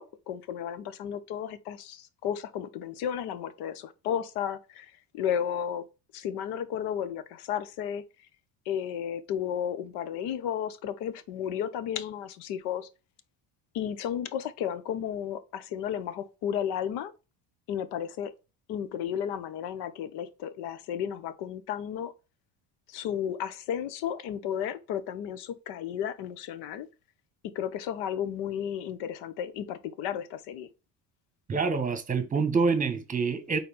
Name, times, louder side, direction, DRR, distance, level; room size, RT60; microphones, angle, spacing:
voice 1, 0.0-5.9 6.1-8.0 8.7-12.9 13.7-17.1 17.7-18.3 18.7-22.1 22.9-26.9 27.4-30.7, left 9 dB, 80° left, 0.9 m, -33 dB
voice 2, 31.5-33.6, right 4 dB, 20° right, 1.3 m, -26 dB
4.3 x 4.0 x 5.5 m
supercardioid pair, 100°, 39 cm